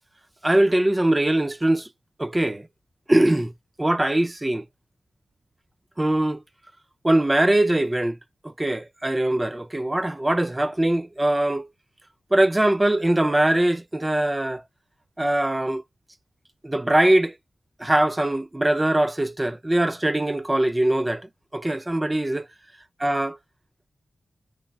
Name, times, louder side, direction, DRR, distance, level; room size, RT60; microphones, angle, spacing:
voice 1, 0.4-1.9 2.2-2.7 3.1-3.5 3.8-4.6 6.0-6.4 7.0-8.2 8.4-11.7 12.3-14.6 15.2-15.8 16.6-17.3 17.8-21.3 21.5-22.5 23.0-23.4, right 1 dB, 15° right, 0.3 m, -22 dB
3.3 x 2.2 x 2.3 m
wide cardioid pair, 110°, 0 cm